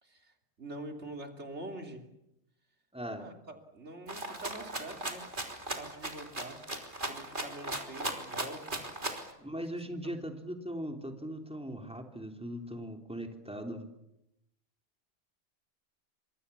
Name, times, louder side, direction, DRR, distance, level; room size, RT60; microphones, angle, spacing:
voice 1, 0.0-2.1 3.1-5.3 5.7-6.6 7.1-8.9 9.7-9.8, right 2 dB, 70° right, 4 dB, 3.5 m, -45 dB
voice 2, 2.9-3.3 9.4-13.9, equal, 5° right, 4 dB, 3.4 m, -39 dB
Rattle (instrument), 4.1-9.3, right 2 dB, 45° right, 3.7 m, -37 dB
29.0 x 25.5 x 7.2 m, 0.86 s
omnidirectional pair, 1.2 m